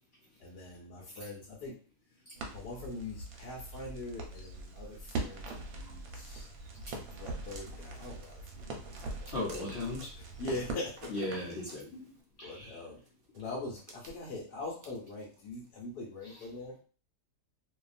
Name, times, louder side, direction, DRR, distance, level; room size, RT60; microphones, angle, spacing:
voice 1, 0.4-1.7 2.5-6.5 7.2-8.4 8.8-9.6 10.2-11.1 12.4-13.0 13.3-16.7, left 2 dB, 85° left, -4 dB, 1.3 m, -42 dB
Crackle, 2.4-11.6, right 2 dB, 65° right, 0.9 m, -42 dB
sound 1, 7.4-10.0 10.5-12.2 13.0-15.7, right 3 dB, 85° right, 0.4 m, -54 dB
voice 2, 9.3-10.2 11.1-12.1 12.4-12.8 16.2-16.4, left 2 dB, 60° left, -4 dB, 0.7 m, -37 dB
2.7 x 2.3 x 2.4 m, 0.38 s
omnidirectional pair, 1.7 m